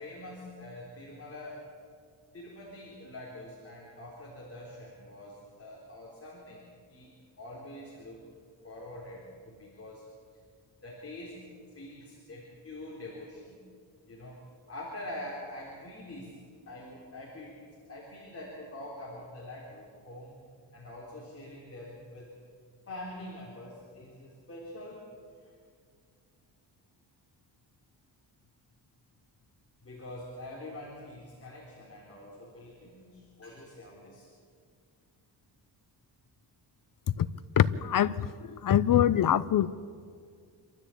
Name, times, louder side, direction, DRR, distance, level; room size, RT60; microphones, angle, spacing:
voice 1, 0.0-1.7 2.3-8.3 8.6-10.0 10.8-11.4 11.7-13.6 14.1-16.4 16.7-17.6 17.9-20.4 20.7-22.3 22.9-25.1 25.4-25.5 29.8-34.3, left 1 dB, 30° left, -3 dB, 3.8 m, -45 dB
voice 2, 37.6-39.7, left 10 dB, 50° left, 16 dB, 0.7 m, -24 dB
26.5 x 13.5 x 8.5 m, 2.1 s
wide cardioid pair, 150°, 44 cm